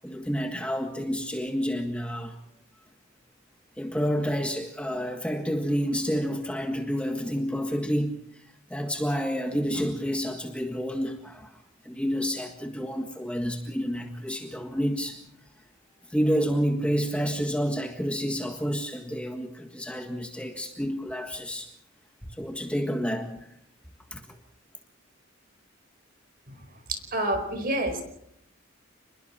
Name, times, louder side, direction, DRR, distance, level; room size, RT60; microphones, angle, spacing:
voice 1, 0.0-2.4 3.8-8.4 8.7-11.5 11.8-15.2 16.1-21.7 22.2-23.4 24.1-24.2, equal, 5° left, 1.6 m, -29 dB
voice 2, 26.9-28.0, right 1 dB, 45° right, 4.9 m, -28 dB
29.5 x 21.5 x 4.4 m
head